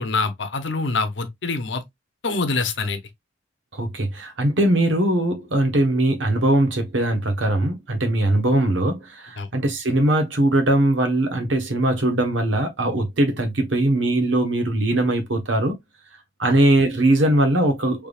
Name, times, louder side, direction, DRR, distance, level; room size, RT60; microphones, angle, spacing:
voice 1, 0.0-1.8 2.2-3.0 9.4-9.5, left 3 dB, 70° left, 0.8 m, -25 dB
voice 2, 3.7-15.8 16.4-18.1, right 1 dB, 85° right, 1.1 m, -20 dB
3.5 x 3.4 x 2.4 m
head